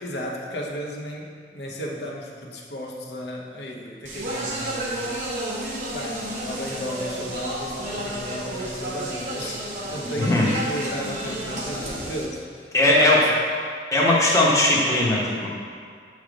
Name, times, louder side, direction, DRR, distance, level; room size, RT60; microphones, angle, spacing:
voice 1, 0.0-5.1 5.5-13.3 14.1-14.2, equal, 75° left, -1 dB, 0.9 m, -34 dB
Speech, 4.1-12.3, right 1 dB, 45° right, 1.0 m, -31 dB
voice 2, 10.2-10.5 12.7-13.2 13.9-15.5, left 1 dB, 20° left, -4 dB, 0.9 m, -19 dB
7.2 x 3.4 x 5.1 m, 2.1 s
head